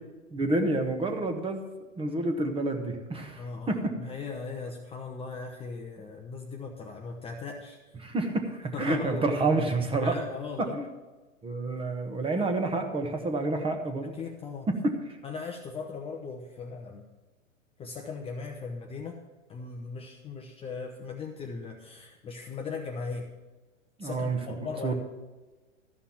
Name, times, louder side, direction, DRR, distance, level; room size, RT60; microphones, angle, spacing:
voice 1, 0.3-1.6 2.0-3.9 8.0-10.2 10.7-10.9 11.4-14.1 14.7-14.9 24.0-24.6 24.8-24.9, right 2 dB, 15° right, 5 dB, 1.3 m, -28 dB
voice 2, 3.4-7.8 8.7-9.4 10.0-10.8 14.0-14.7 15.2-17.1 17.8-19.2 19.5-23.3 24.0-24.9, left 4 dB, 15° left, 1 dB, 0.8 m, -38 dB
13.5 x 5.6 x 7.2 m, 1.2 s
figure-of-eight pair, 105°, 39 cm